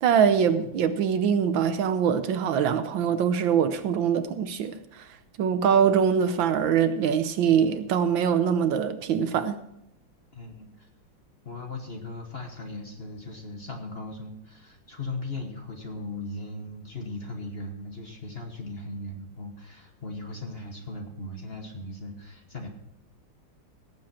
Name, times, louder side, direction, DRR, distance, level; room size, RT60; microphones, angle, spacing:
voice 1, 0.0-5.1 5.4-9.6, right 7 dB, 70° right, 1.4 m, -23 dB
voice 2, 10.3-10.9 11.4-22.7, left 2 dB, 35° left, 1.2 m, -38 dB
17.5 x 7.7 x 4.3 m
omnidirectional pair, 2.3 m